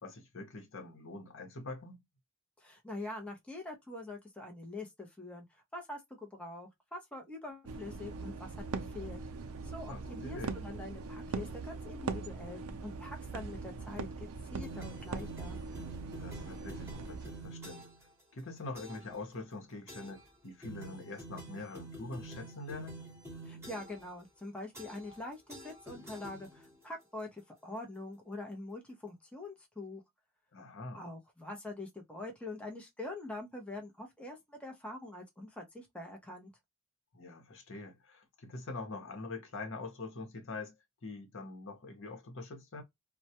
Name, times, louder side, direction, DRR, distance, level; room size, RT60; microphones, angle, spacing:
voice 1, 0.0-2.0 9.9-10.6 16.2-17.9 18.3-23.0 30.5-31.1 37.1-40.8 41.0-42.8, left 2 dB, 65° left, 0.8 m, -44 dB
voice 2, 2.6-5.5 5.7-9.2 9.7-15.6 23.4-30.0 30.9-36.5, left 2 dB, 5° left, 0.6 m, -44 dB
sound 1, 7.7-17.5, right 4 dB, 90° right, 0.4 m, -41 dB
sound 2, 14.6-18.1 18.7-19.2 19.9-20.3 20.6-24.1 24.7-25.2 25.5-26.8, right 2 dB, 15° right, 1.0 m, -48 dB
2.2 x 2.1 x 2.7 m
head